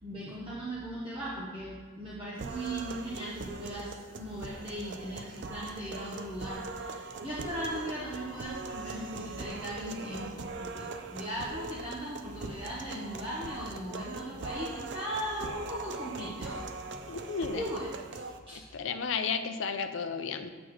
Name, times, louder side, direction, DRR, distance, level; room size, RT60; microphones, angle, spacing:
voice 1, 0.0-16.7 17.6-18.7, equal, 25° right, -7 dB, 0.9 m, -38 dB
sound 1, 2.4-18.4, right 3 dB, 55° right, 0.4 m, -41 dB
voice 2, 17.1-17.6 18.7-20.5, left 5 dB, 65° left, 8 dB, 0.5 m, -33 dB
8.1 x 6.0 x 3.1 m, 1.5 s
head